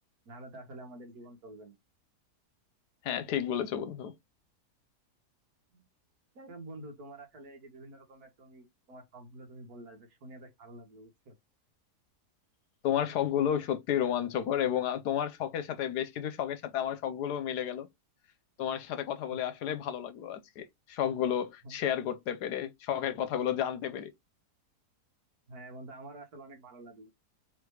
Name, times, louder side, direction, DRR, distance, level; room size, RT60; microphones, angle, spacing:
voice 1, 0.2-1.7 5.7-5.9 6.3-11.3 21.6-21.8 25.5-27.1, right 2 dB, 65° right, 1.8 m, -48 dB
voice 2, 3.0-4.1 12.8-17.9 18.6-24.1, left 9 dB, 80° left, 1.3 m, -32 dB
3.8 x 3.3 x 3.1 m
omnidirectional pair, 1.7 m